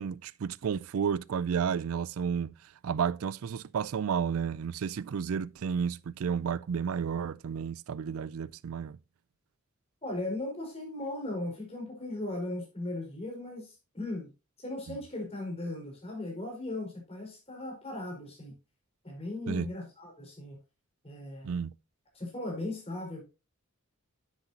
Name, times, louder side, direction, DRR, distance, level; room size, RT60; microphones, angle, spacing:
voice 1, 0.0-2.5 2.8-9.0 14.9-15.0 19.5-19.7 21.4-21.7, right 7 dB, 80° right, 0.4 m, -32 dB
voice 2, 10.0-14.3 14.6-18.5 19.0-20.6 21.0-21.6 22.1-23.2, left 2 dB, 30° left, 4.5 m, -37 dB
9.8 x 8.1 x 2.8 m
head